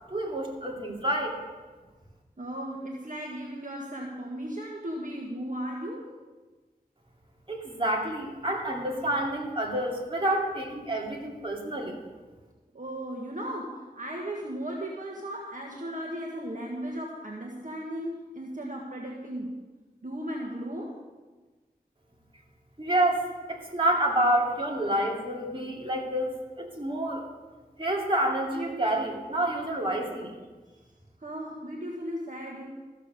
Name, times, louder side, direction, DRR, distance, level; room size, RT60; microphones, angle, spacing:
voice 1, 0.1-1.3 7.5-12.0 22.8-27.2 27.8-30.3, right 1 dB, 35° right, -1 dB, 2.4 m, -28 dB
voice 2, 2.4-6.1 12.7-19.6 20.0-21.0 31.2-32.6, equal, 55° right, -2 dB, 1.6 m, -36 dB
14.0 x 6.7 x 6.7 m, 1.3 s
wide cardioid pair, 50°, 16 cm